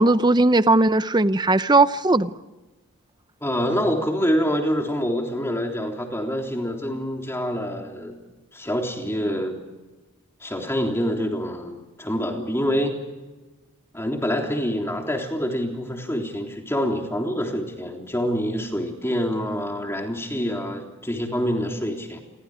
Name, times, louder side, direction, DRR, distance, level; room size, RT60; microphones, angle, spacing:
voice 1, 0.0-2.3, right 2 dB, 20° right, 0.7 m, -18 dB
voice 2, 3.4-8.2 8.5-9.6 10.4-13.0 13.9-22.2, equal, 10° left, 3.5 m, -26 dB
29.5 x 24.0 x 5.0 m
head